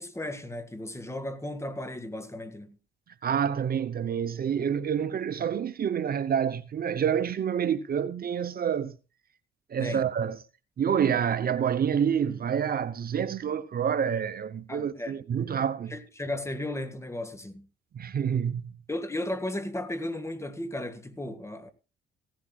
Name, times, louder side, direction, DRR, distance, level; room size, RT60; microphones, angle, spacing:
voice 1, 0.0-2.8 9.8-10.0 14.7-15.2 15.9-17.7 18.9-21.7, left 1 dB, 15° left, 1.7 m, -35 dB
voice 2, 3.2-9.0 9.7-10.4 10.8-15.9 17.9-18.7, right 8 dB, 50° right, 0.9 m, -28 dB
16.5 x 15.5 x 2.4 m
cardioid pair, 90°, 20 cm